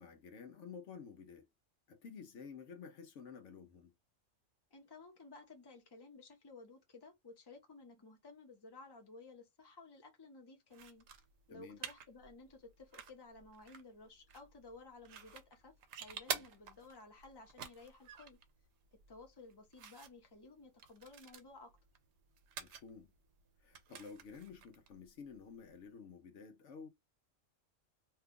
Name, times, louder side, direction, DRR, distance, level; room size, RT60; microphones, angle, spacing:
voice 1, 0.0-1.5 1.9-3.9 11.5-11.8 16.3-16.4 22.6-23.1 23.6-26.9, left 6 dB, 70° left, 1.0 m, -52 dB
voice 2, 4.7-11.1 11.5-18.4 19.1-21.8, left 3 dB, 20° left, 0.8 m, -56 dB
sound 1, 10.7-25.9, right 7 dB, 65° right, 0.9 m, -50 dB
2.8 x 2.3 x 3.5 m
omnidirectional pair, 1.3 m